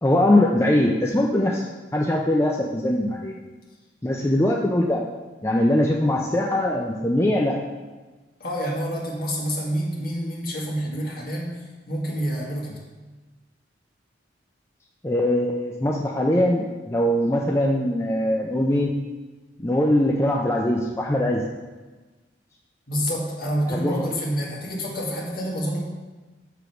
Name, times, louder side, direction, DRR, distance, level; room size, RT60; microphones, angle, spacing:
voice 1, 0.0-1.7 1.9-3.3 4.0-5.0 5.4-7.6 15.0-18.9 19.6-21.4 23.7-24.1, left 1 dB, 15° left, -1 dB, 0.5 m, -21 dB
voice 2, 8.4-11.5 11.9-12.8 22.9-25.8, equal, 50° left, -3 dB, 1.9 m, -27 dB
6.4 x 5.1 x 5.9 m, 1.2 s
head